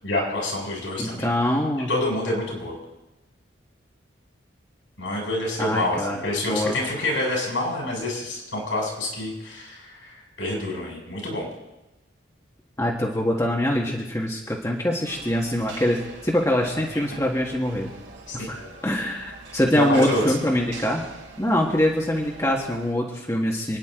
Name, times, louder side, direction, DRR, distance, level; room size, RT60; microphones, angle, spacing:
voice 1, 0.0-1.3 1.9-2.7 5.0-11.5 18.3-18.7 19.8-20.2, left 1 dB, 80° left, -2 dB, 7.0 m, -27 dB
voice 2, 1.0-1.9 5.6-6.2 6.5-6.8 12.8-16.0 16.2-17.9 18.3-18.6 18.8-21.0 21.4-23.8, left 1 dB, 15° left, -2 dB, 1.8 m, -24 dB
sound 1, 15.0-22.9, right 3 dB, 75° right, 4.0 m, -43 dB
29.0 x 10.5 x 3.9 m, 1.0 s
head